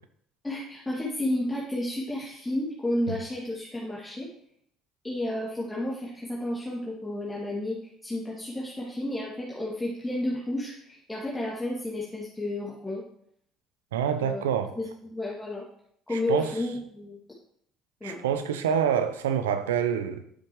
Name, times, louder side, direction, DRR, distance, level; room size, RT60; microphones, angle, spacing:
voice 1, 0.4-4.3 5.0-7.8 8.0-13.0 14.1-14.4 14.8-15.6 16.1-17.2 18.0-18.2, left 1 dB, 15° left, -6 dB, 2.4 m, -32 dB
voice 2, 13.9-14.7 16.1-16.5 18.0-20.2, right 8 dB, 80° right, 9 dB, 0.8 m, -26 dB
11.5 x 7.1 x 3.1 m, 0.68 s
hypercardioid pair, 60°, 0 cm